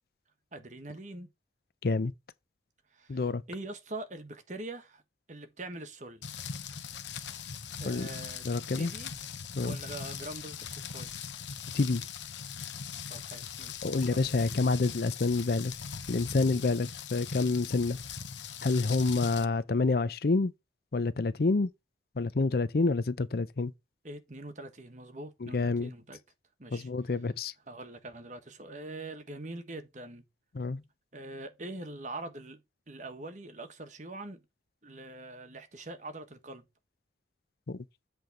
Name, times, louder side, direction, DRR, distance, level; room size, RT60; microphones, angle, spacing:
voice 1, 0.5-1.3 2.9-5.0 5.3-6.2 7.8-8.4 8.7-9.1 9.6-11.1 13.1-14.3 24.0-26.2 26.6-26.9 27.7-30.2 31.1-32.6 32.9-34.4 34.8-36.6, right 2 dB, 40° right, 1.3 m, -43 dB
voice 2, 3.1-3.4 7.8-8.1 8.4-8.9 9.6-9.8 11.7-12.0 13.8-15.7 16.1-18.0 18.6-20.5 20.9-21.7 22.2-23.7 25.4-25.9 26.7-27.5 30.5-30.8 37.7-37.8, left 3 dB, 55° left, 0.5 m, -28 dB
Rain, 6.2-19.4, left 7 dB, 80° left, 0.9 m, -40 dB
7.9 x 3.4 x 6.1 m
head